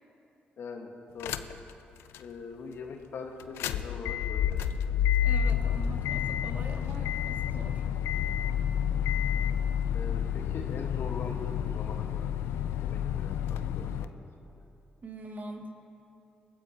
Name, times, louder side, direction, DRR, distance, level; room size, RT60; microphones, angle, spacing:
voice 1, 0.6-1.5 2.2-4.8 5.4-5.5 8.9-9.0 9.9-12.3 12.8-14.5, left 4 dB, 65° left, 3 dB, 1.4 m, -42 dB
sound 1, 1.2-1.7 2.1-2.2 3.4-14.1, left 9 dB, 85° left, 0.4 m, -29 dB
voice 2, 5.2-7.8 15.0-15.7, right 1 dB, 45° right, 1 dB, 2.0 m, -43 dB
22.0 x 14.5 x 2.8 m, 2.7 s
supercardioid pair, 50°, 4 cm